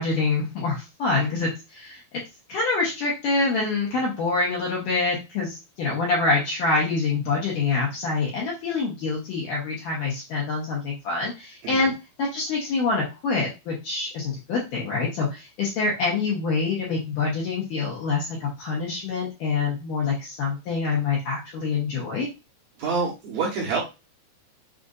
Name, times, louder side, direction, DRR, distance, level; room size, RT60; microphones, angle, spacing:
voice 1, 0.0-2.0 2.5-11.9 12.2-22.3, left 4 dB, 70° left, -5 dB, 2.1 m, -26 dB
voice 2, 11.6-11.9 22.8-23.8, right 4 dB, 70° right, -3 dB, 2.5 m, -27 dB
6.6 x 2.5 x 2.5 m, 0.27 s
omnidirectional pair, 5.0 m